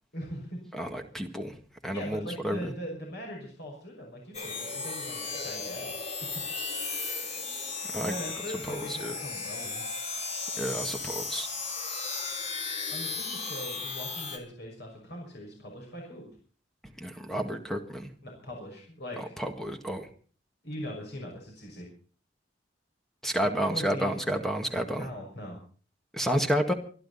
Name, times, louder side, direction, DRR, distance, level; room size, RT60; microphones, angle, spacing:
voice 1, 0.1-0.6 1.9-6.5 8.0-10.0 12.9-16.3 18.2-19.3 20.6-21.9 23.5-24.4 25.0-25.6, equal, 65° left, 0 dB, 6.0 m, -40 dB
voice 2, 0.7-1.6 1.8-2.7 7.9-8.1 8.7-9.1 10.6-11.5 17.0-18.1 19.2-20.1 23.2-25.1 26.1-26.7, equal, ahead, 5 dB, 1.9 m, -30 dB
sound 1, 4.3-14.4, left 4 dB, 35° left, 3.4 m, -35 dB
26.0 x 11.5 x 4.1 m, 0.42 s
head